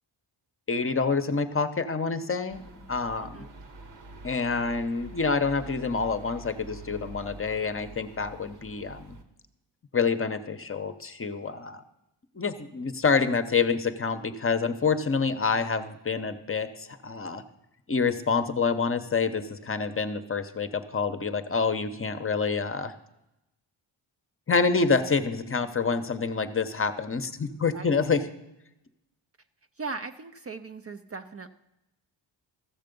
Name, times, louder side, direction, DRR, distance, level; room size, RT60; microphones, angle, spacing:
voice 1, 0.7-2.6 2.9-3.5 4.2-9.2 9.9-11.8 12.3-17.4 17.9-22.9 24.5-28.2, left 5 dB, 30° left, 9 dB, 0.8 m, -27 dB
sound 1, 2.5-9.2, right 1 dB, 65° right, 1.4 m, -46 dB
voice 2, 29.8-31.5, right 4 dB, 30° right, 8 dB, 0.5 m, -38 dB
14.5 x 6.7 x 5.3 m, 0.90 s
cardioid pair, 85°, 46 cm